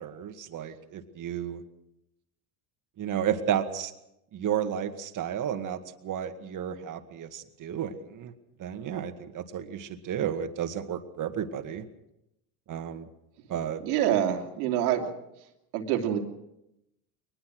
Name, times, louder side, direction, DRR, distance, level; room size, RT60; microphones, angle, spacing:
voice 1, 0.0-1.6 3.0-3.9 4.3-8.3 8.6-11.8 12.7-13.1 13.5-13.8, right 9 dB, 45° right, 7 dB, 2.1 m, -32 dB
voice 2, 13.8-15.1 15.7-16.2, right 10 dB, 85° right, 4 dB, 3.0 m, -26 dB
22.5 x 20.0 x 6.3 m, 0.85 s
supercardioid pair, 100°, 43 cm